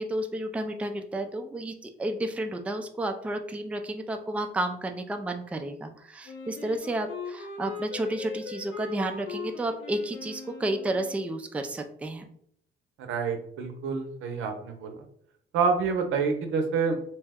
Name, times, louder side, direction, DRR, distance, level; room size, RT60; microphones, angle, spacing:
voice 1, 0.0-12.3, right 1 dB, 5° right, 5 dB, 0.3 m, -31 dB
Wind instrument woodwind instrument, 6.3-11.3, left 5 dB, 75° left, 0.8 m, -40 dB
voice 2, 13.0-14.9 15.5-17.0, right 5 dB, 85° right, 5 dB, 0.6 m, -27 dB
2.8 x 2.1 x 3.4 m, 0.66 s
cardioid pair, 90°, 20 cm